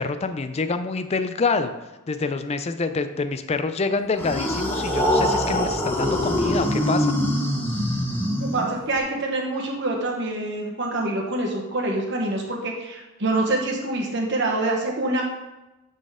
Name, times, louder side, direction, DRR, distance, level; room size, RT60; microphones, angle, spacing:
voice 1, 0.0-1.7 2.1-7.1, left 4 dB, 30° left, 10 dB, 0.4 m, -26 dB
sound 1, 4.2-9.0, equal, 10° left, 0.8 m, -23 dB
voice 2, 8.4-15.2, right 2 dB, 55° right, 0 dB, 1.3 m, -26 dB
10.0 x 4.0 x 3.7 m, 1.0 s
head